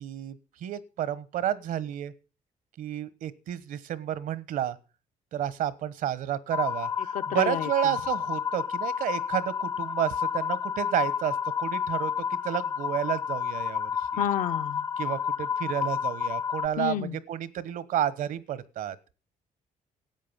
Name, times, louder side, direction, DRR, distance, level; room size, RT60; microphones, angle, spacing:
voice 1, 0.0-2.1 2.8-4.8 5.3-14.2 15.0-19.0, right 11 dB, 75° right, 1.2 m, -31 dB
sound 1, 6.5-16.7, left 7 dB, 20° left, 0.6 m, -30 dB
voice 2, 7.1-7.7 14.2-14.9 16.8-17.2, left 10 dB, 75° left, 0.8 m, -30 dB
13.5 x 8.9 x 7.3 m
cardioid pair, 145°, 14 cm